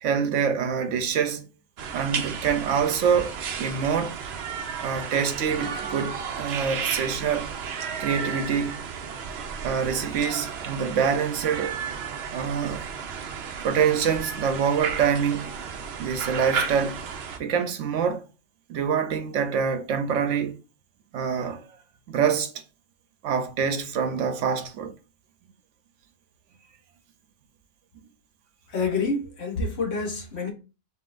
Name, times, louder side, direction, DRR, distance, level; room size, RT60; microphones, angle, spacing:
voice 1, 0.0-1.4 1.9-4.2 4.8-7.5 8.0-8.8 9.6-11.8 12.3-12.8 13.6-15.5 16.0-17.0 17.4-18.2 18.7-20.6 21.1-21.6 22.1-22.5 23.2-24.9, right 7 dB, 80° right, 1.0 m, -25 dB
sound 1, 1.8-17.4, right 6 dB, 65° right, 0.8 m, -33 dB
voice 2, 28.7-30.5, left 4 dB, 60° left, 1.3 m, -27 dB
5.5 x 3.0 x 2.5 m
omnidirectional pair, 1.3 m